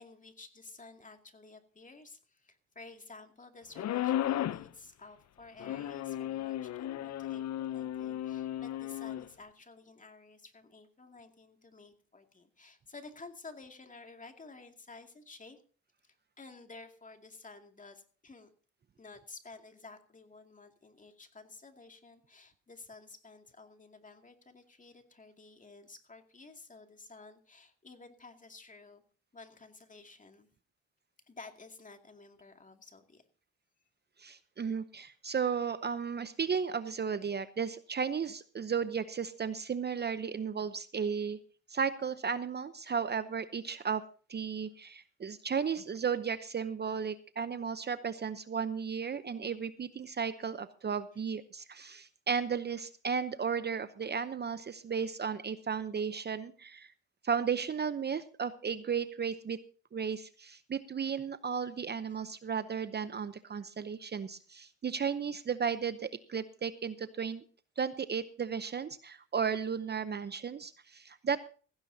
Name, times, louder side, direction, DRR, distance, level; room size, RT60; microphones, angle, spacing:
voice 1, 0.0-15.6 16.0-18.5 19.0-29.0 29.3-30.5 31.3-33.2 42.8-42.9 51.1-51.2, left 3 dB, 25° left, 5 dB, 2.4 m, -52 dB
sound 1, 3.8-4.7 5.6-9.3, left 12 dB, 60° left, 0.7 m, -34 dB
voice 2, 34.2-41.4 41.7-44.0 44.3-56.9 57.2-59.6 59.9-67.4 67.8-71.4, right 6 dB, 35° right, 13 dB, 0.8 m, -34 dB
16.0 x 16.0 x 2.8 m, 0.40 s
cardioid pair, 90°, 30 cm